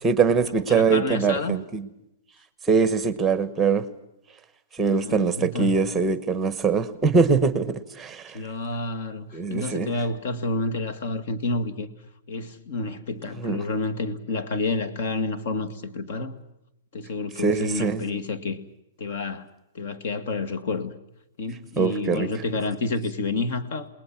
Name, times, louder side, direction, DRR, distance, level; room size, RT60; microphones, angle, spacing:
voice 1, 0.0-1.9 2.7-3.8 4.7-8.4 9.3-9.9 13.4-13.6 17.4-18.0 21.8-22.3, right 5 dB, 10° right, 1.1 m, -22 dB
voice 2, 0.7-1.6 4.9-5.8 8.3-11.9 12.3-16.4 16.9-18.6 19.0-19.5 19.7-20.9 21.4-23.9, left 3 dB, 45° left, 2.0 m, -29 dB
29.0 x 20.5 x 5.9 m
hypercardioid pair, 175°, 0 cm